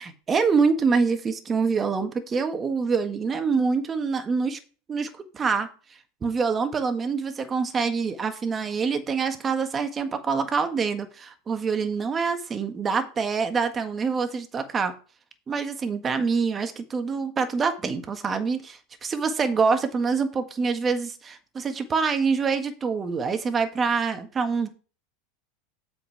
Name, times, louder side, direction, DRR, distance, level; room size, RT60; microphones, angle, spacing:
voice 1, 0.0-4.6 4.9-5.1 5.3-5.7 6.2-14.9 15.5-24.7, right 5 dB, 25° right, 1.7 m, -25 dB
7.9 x 5.4 x 5.9 m
hypercardioid pair, 90°, 0 cm